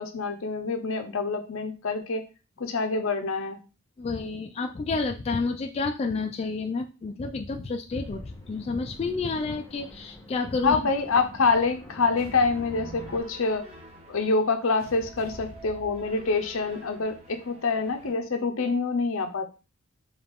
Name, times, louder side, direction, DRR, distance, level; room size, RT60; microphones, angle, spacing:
voice 1, 0.0-2.2 2.6-3.6 10.6-13.6 14.1-19.5, left 4 dB, 75° left, 6 dB, 0.7 m, -26 dB
voice 2, 4.0-10.8, left 3 dB, 30° left, 4 dB, 0.3 m, -30 dB
sound 1, 7.9-13.2, equal, 15° left, 0.8 m, -46 dB
sound 2, 12.2-18.1, right 1 dB, 30° right, 0.8 m, -47 dB
4.8 x 2.4 x 3.5 m, 0.32 s
head